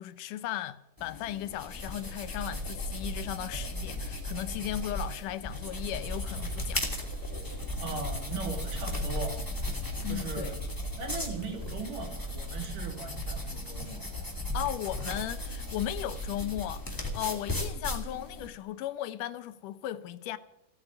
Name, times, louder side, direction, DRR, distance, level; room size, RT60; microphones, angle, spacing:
voice 1, 0.0-6.9 10.0-10.6 14.5-20.4, left 13 dB, 80° left, 2.3 m, -36 dB
sound 1, 1.0-18.5, left 1 dB, 5° left, 2.5 m, -36 dB
voice 2, 7.8-9.4 10.1-14.1, right 4 dB, 75° right, 4.4 m, -39 dB
16.5 x 9.0 x 9.8 m
omnidirectional pair, 3.7 m